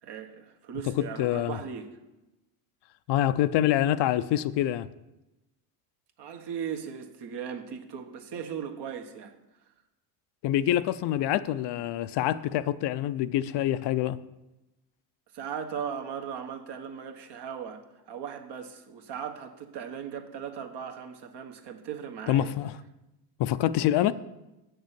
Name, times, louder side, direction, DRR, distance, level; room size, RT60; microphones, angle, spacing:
voice 1, 0.0-1.9 6.2-9.3 15.3-22.5, right 7 dB, 65° right, 1.5 m, -38 dB
voice 2, 1.0-1.6 3.1-4.9 10.4-14.2 22.3-22.7 23.4-24.1, left 12 dB, 65° left, 0.6 m, -26 dB
7.9 x 6.7 x 8.3 m
cardioid pair, 100°, 45 cm